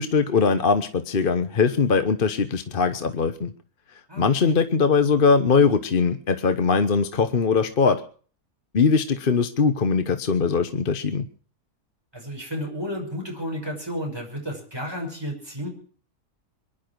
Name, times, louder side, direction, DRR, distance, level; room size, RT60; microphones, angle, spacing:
voice 1, 0.0-3.5 4.2-8.0 8.7-11.3, left 5 dB, 40° left, 9 dB, 1.1 m, -21 dB
voice 2, 4.1-4.5 12.1-15.7, equal, 15° right, 0 dB, 5.8 m, -32 dB
24.0 x 11.0 x 4.7 m, 0.43 s
omnidirectional pair, 1.6 m